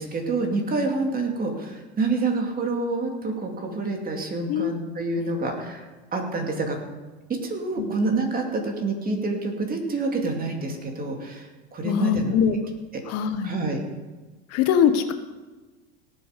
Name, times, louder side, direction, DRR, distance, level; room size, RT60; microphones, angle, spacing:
voice 1, 0.0-5.9 6.1-6.8 7.3-12.6 12.9-13.0 13.4-13.8, right 3 dB, 25° right, 3 dB, 2.6 m, -27 dB
voice 2, 11.8-12.6 13.1-13.5 14.5-15.1, left 8 dB, 50° left, 9 dB, 1.2 m, -22 dB
18.0 x 7.9 x 5.2 m, 1.3 s
supercardioid pair, 115°, 32 cm